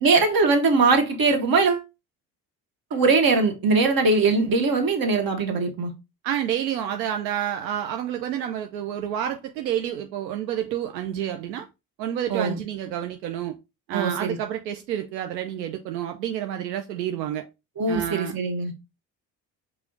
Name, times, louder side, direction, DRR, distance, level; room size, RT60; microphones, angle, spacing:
voice 1, 0.0-1.8 2.9-5.9 12.3-12.6 13.9-14.4 17.8-18.7, right 4 dB, 45° right, 1.4 m, -21 dB
voice 2, 6.2-11.7 12.0-13.5 13.9-17.5 17.9-18.3, right 10 dB, 85° right, 0.6 m, -29 dB
4.9 x 2.4 x 4.4 m
hypercardioid pair, 50°, 49 cm